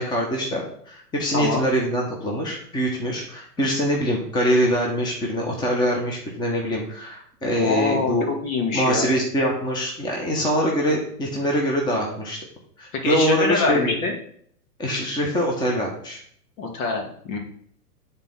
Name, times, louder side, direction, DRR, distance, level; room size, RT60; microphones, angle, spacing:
voice 1, 0.0-8.3 8.7-12.4 12.8-14.0 14.8-16.2, equal, 10° left, -1 dB, 1.1 m, -24 dB
voice 2, 7.6-9.1 13.0-14.1 16.6-17.4, left 3 dB, 55° left, 2 dB, 2.2 m, -25 dB
8.7 x 4.1 x 3.8 m, 0.62 s
hypercardioid pair, 120°, 49 cm